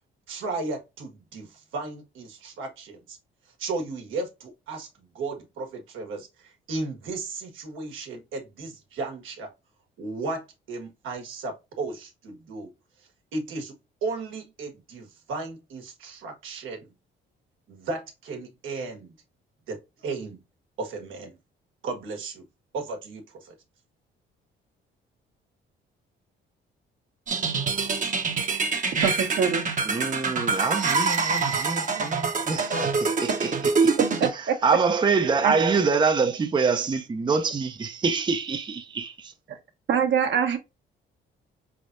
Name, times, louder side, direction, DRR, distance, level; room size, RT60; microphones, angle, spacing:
voice 1, 0.3-3.2 3.6-4.9 5.1-9.5 10.0-12.7 13.3-13.7 14.0-16.8 17.7-19.1 19.7-20.4 20.8-21.4 21.8-22.4 22.7-23.5, right 3 dB, 80° right, 1.4 m, -35 dB
sound 1, 27.3-34.3, right 4 dB, 40° right, 0.9 m, -25 dB
voice 2, 29.0-29.7 34.2-34.6 35.4-35.5 39.5-39.6 39.9-40.6, right 7 dB, 65° right, 1.2 m, -24 dB
voice 3, 29.9-33.6 33.8-33.9 34.6-39.3, right 5 dB, 25° right, 0.6 m, -25 dB
4.5 x 3.5 x 2.5 m
cardioid pair, 90°, 20 cm